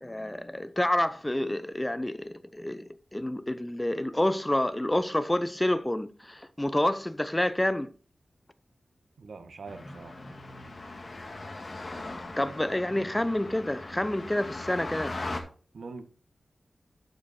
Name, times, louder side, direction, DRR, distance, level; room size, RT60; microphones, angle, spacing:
voice 1, 0.0-7.9 10.3-10.4 12.4-15.2, left 1 dB, 15° left, 0.6 m, -28 dB
voice 2, 9.2-10.1 12.2-12.4 15.7-16.0, right 4 dB, 80° right, 1.3 m, -43 dB
sound 1, 9.7-15.4, left 2 dB, 45° left, 1.8 m, -39 dB
11.5 x 5.0 x 4.2 m
wide cardioid pair, 95°, 0 cm